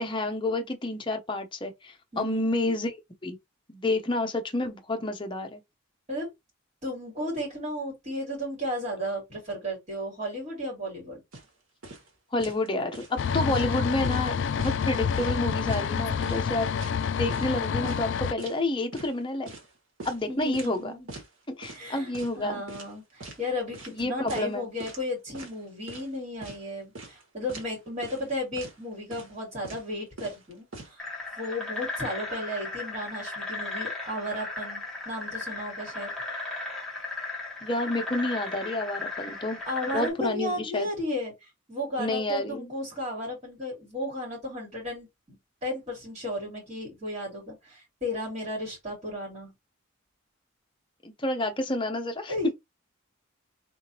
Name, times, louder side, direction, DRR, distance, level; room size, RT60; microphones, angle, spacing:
voice 1, 0.0-3.4 3.7-5.6 12.3-16.7 17.1-19.5 20.0-21.0 21.6-22.6 23.9-24.7 37.6-39.6 39.9-40.9 42.0-42.7 51.0-52.3, left 2 dB, 25° left, 0.8 m, -29 dB
voice 2, 2.1-2.4 6.1-6.3 6.8-11.2 20.3-21.1 21.7-31.0 31.4-36.1 39.7-45.1 45.6-49.5 52.3-52.5, left 1 dB, 35° right, 2.9 m, -34 dB
sound 1, 11.3-11.5 11.8-12.1 12.4-12.7 12.9-13.7 14.0-14.3 14.6-15.4 15.7-15.9 16.2-17.6 17.8-18.0 18.4-18.6 18.9-19.1 19.5-20.8 21.1-21.3 21.6-21.9 22.1-22.4 22.7-23.4 23.7-24.0 24.3-24.5 24.8-25.1 25.3-26.1 26.4-26.6 26.9-27.2 27.5-27.7 28.0-28.3 28.6-28.8 29.1-29.4 29.6-29.9 30.2-30.9, right 2 dB, 90° right, 1.6 m, -42 dB
sound 2, 13.2-18.3, left 7 dB, 60° left, 0.3 m, -28 dB
sound 3, 31.0-40.1, left 2 dB, ahead, 1.3 m, -36 dB
3.7 x 3.5 x 2.8 m
head